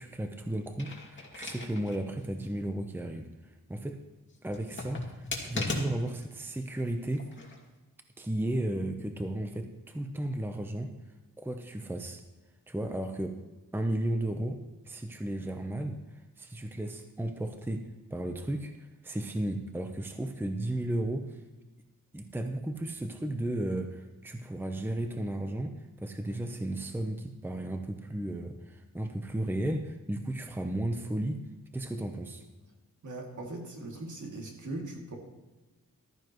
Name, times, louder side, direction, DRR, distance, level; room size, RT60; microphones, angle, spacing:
voice 1, 0.0-4.0 4.4-7.3 8.2-10.9 11.4-12.2 12.7-13.4 13.7-14.6 14.8-21.4 22.1-31.4 31.7-32.4, right 1 dB, 5° right, 5 dB, 0.8 m, -34 dB
sound 1, 0.6-2.0 2.4-2.5 4.5-6.2 7.1-7.6, left 2 dB, 35° left, 2.3 m, -37 dB
voice 2, 33.0-35.2, right 2 dB, 60° right, 0 dB, 2.6 m, -40 dB
14.5 x 13.0 x 3.1 m, 1.2 s
wide cardioid pair, 100°, 34 cm